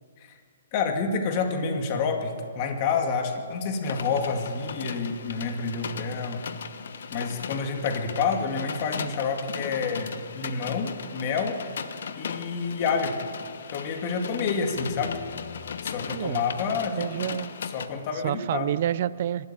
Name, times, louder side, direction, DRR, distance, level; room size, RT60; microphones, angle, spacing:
voice 1, 0.7-6.4 7.1-11.6 12.2-13.2 13.7-15.2 15.8-17.1 17.7-18.7, left 5 dB, 35° left, 5 dB, 2.3 m, -28 dB
sound 1, 3.8-17.9, left 6 dB, 65° left, 1.2 m, -37 dB
voice 2, 16.1-17.5 18.2-19.5, right 11 dB, 45° right, 18 dB, 0.4 m, -29 dB
24.0 x 12.5 x 9.0 m, 2.1 s
hypercardioid pair, 155°, 0 cm